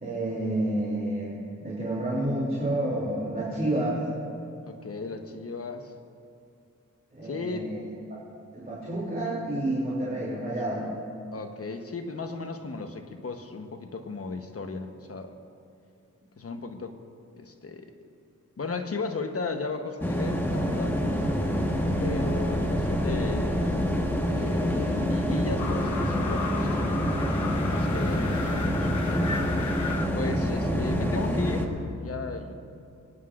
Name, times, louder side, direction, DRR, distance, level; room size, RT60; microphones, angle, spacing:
voice 1, 0.0-4.0 7.1-7.8 8.1-8.2 8.5-10.9, right 1 dB, 30° right, -7 dB, 2.8 m, -29 dB
voice 2, 4.6-5.9 7.2-7.8 10.7-10.9 11.3-15.4 16.4-17.0 17.4-17.9 18.6-21.0 22.0-23.9 24.2-27.1 27.7-28.9 30.1-31.7 32.0-32.5, left 3 dB, 50° left, 5 dB, 1.0 m, -35 dB
sound 1, 20.0-31.7, equal, 5° left, 1.3 m, -26 dB
sound 2, 25.6-30.1, left 4 dB, 70° left, 0.8 m, -35 dB
24.0 x 9.6 x 2.5 m, 2.6 s
wide cardioid pair, 80°, 30 cm